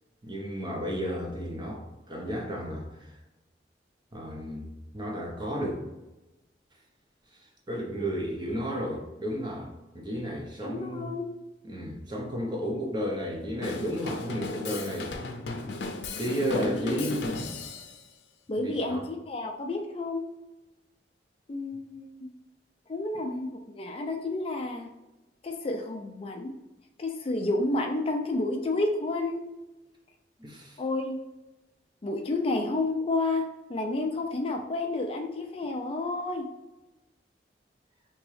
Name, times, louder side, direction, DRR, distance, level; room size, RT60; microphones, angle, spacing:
voice 1, 0.2-3.1 4.1-5.8 7.7-9.7 9.9-11.1 11.6-15.1 16.2-17.4 18.6-19.0 30.4-30.8, equal, 25° right, 0 dB, 0.7 m, -33 dB
voice 2, 10.6-11.2 16.5-17.3 18.5-20.2 21.5-22.3 22.9-24.9 25.4-26.5 27.0-29.4 30.8-31.2 32.0-36.5, left 2 dB, 30° left, 3 dB, 0.4 m, -30 dB
Drum kit / Drum, 13.6-18.0, left 3 dB, 85° left, 0.6 m, -36 dB
3.5 x 3.0 x 3.2 m, 1.0 s
head